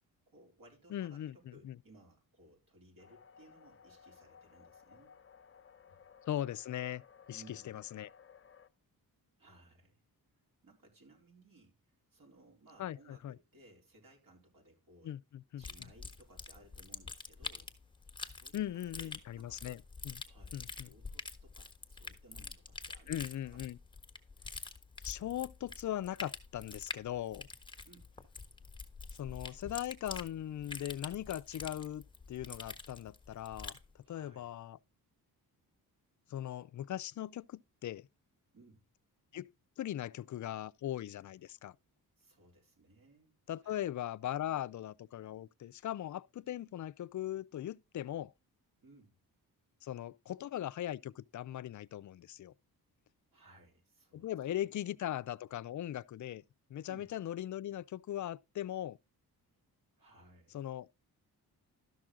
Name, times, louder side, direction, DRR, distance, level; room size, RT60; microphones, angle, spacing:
voice 1, 0.3-5.1 5.9-6.0 7.3-7.8 9.4-10.0 10.6-15.1 15.6-17.7 18.3-19.8 20.2-23.6 27.8-28.1 34.0-34.5 38.5-38.8 42.2-43.8 48.8-49.1 53.3-54.3 54.6-54.8 56.9-57.1 59.9-60.6, right 2 dB, 60° right, 4.0 m, -61 dB
voice 2, 0.9-1.8 6.3-7.0 7.3-8.1 12.8-13.4 15.0-15.7 18.5-20.2 20.5-20.9 23.1-23.8 25.0-27.5 29.2-33.8 34.1-34.8 36.3-38.1 39.3-39.5 39.8-41.8 43.5-48.3 49.8-52.5 54.1-56.4 56.7-59.0 60.5-60.9, left 12 dB, 50° left, 0.5 m, -39 dB
sound 1, 3.0-8.7, left 7 dB, 35° left, 0.8 m, -59 dB
sound 2, 15.6-33.9, left 3 dB, 15° left, 1.3 m, -46 dB
12.5 x 6.1 x 3.7 m
cardioid pair, 85°, 38 cm